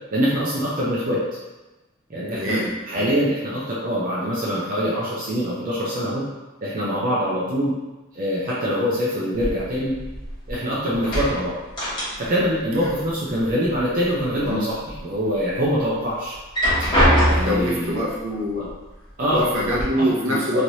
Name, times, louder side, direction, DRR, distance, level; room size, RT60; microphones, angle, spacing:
voice 1, 0.1-1.2 2.1-2.6 2.9-6.2 6.6-7.7 8.1-10.0 10.5-11.5 12.2-16.3 17.3-18.0 18.6-18.7 19.2-19.5 20.0-20.6, equal, 40° right, -7 dB, 0.5 m, -24 dB
voice 2, 2.3-3.1 14.4-14.7 17.2-18.7 19.3-20.6, equal, 70° right, -5 dB, 0.8 m, -25 dB
sound 1, 9.4-10.6 10.9-12.5 12.8-13.8 14.2-15.0 15.5-15.6 16.3-17.7 18.7-18.8 19.2-19.8, equal, 20° left, 1.0 m, -22 dB
3.1 x 2.9 x 2.6 m, 1.1 s
head